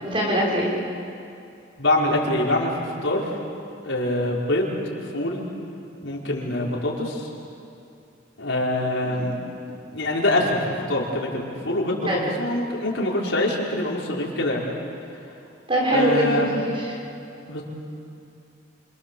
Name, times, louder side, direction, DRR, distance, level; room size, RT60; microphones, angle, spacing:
voice 1, 0.0-0.7 9.0-9.2 12.1-12.2 15.7-16.9, right 1 dB, 25° right, -3 dB, 5.8 m, -23 dB
voice 2, 1.8-3.3 3.8-4.8 5.1-5.4 6.0-7.3 8.4-9.4 9.7-14.6 15.9-16.5 17.5-17.6, left 1 dB, 75° left, -3 dB, 5.1 m, -24 dB
27.5 x 27.0 x 7.2 m, 2.6 s
head